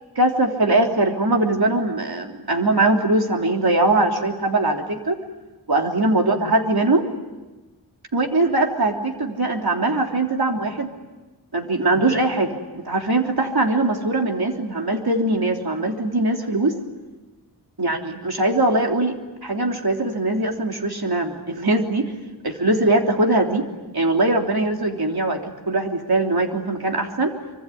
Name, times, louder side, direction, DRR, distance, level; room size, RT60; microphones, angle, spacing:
voice 1, 0.2-5.2 5.7-7.1 8.1-10.9 11.5-16.8 17.8-19.2 19.4-22.1 22.4-23.6 23.9-25.4 25.7-27.3, right 2 dB, 65° right, 2 dB, 3.4 m, -21 dB
25.0 x 24.5 x 9.6 m, 1.2 s
wide cardioid pair, 45°, 40 cm